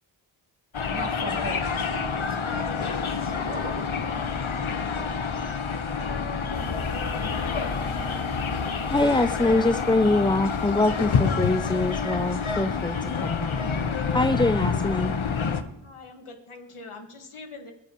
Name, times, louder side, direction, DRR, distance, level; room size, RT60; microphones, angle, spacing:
sound 1, 0.7-15.6, left 5 dB, 75° left, 1.1 m, -28 dB
voice 1, 0.9-3.8, right 1 dB, 25° right, -1 dB, 3.1 m, -38 dB
sound 2, 6.5-14.4, left 3 dB, 35° left, 3.9 m, -41 dB
voice 2, 8.9-13.5 14.1-15.1, left 2 dB, 10° left, 10 dB, 0.4 m, -24 dB
voice 3, 14.3-14.9 15.8-17.7, left 3 dB, 90° left, 4 dB, 1.7 m, -44 dB
21.5 x 13.0 x 3.0 m, 0.84 s
wide cardioid pair, 60°, 49 cm